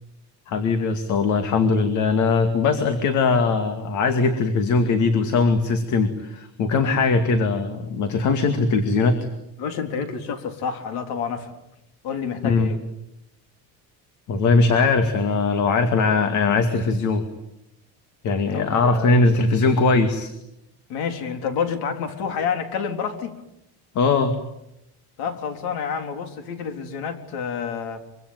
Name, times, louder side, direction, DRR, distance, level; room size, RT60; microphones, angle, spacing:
voice 1, 0.5-9.3 12.4-12.7 14.3-17.3 18.2-20.3 24.0-24.4, left 4 dB, 50° left, 8 dB, 2.4 m, -20 dB
voice 2, 9.6-11.5 12.0-12.8 18.5-19.3 20.9-23.4 25.2-28.0, left 6 dB, 70° left, 7 dB, 3.9 m, -29 dB
25.0 x 24.5 x 9.4 m, 0.84 s
cardioid pair, 175°, 39 cm